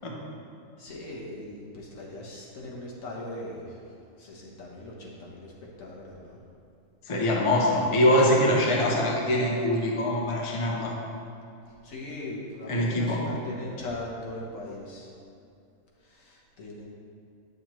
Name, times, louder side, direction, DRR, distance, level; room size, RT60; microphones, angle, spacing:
voice 1, 0.8-3.8 4.2-5.5 5.8-6.4 7.4-7.7 11.7-15.1 16.0-16.9, left 1 dB, 60° left, -3 dB, 1.5 m, -40 dB
voice 2, 7.1-10.9 12.7-13.2, left 1 dB, 30° left, -2 dB, 0.7 m, -23 dB
8.7 x 6.5 x 3.1 m, 2.6 s
omnidirectional pair, 1.6 m